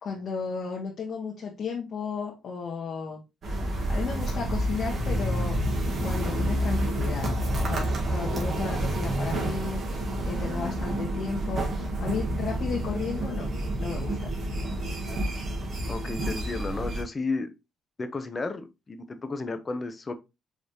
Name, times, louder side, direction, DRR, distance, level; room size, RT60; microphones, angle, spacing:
voice 1, 0.0-3.2 3.9-5.6 6.0-7.3 7.6-9.8 10.2-13.5 13.8-14.3, left 5 dB, 60° left, 1.1 m, -34 dB
sound 1, 3.4-17.0, right 1 dB, 50° right, 1.5 m, -29 dB
voice 2, 15.9-17.5 18.0-20.1, left 3 dB, 30° left, 0.6 m, -33 dB
4.9 x 3.2 x 2.6 m
cardioid pair, 90°, 0 cm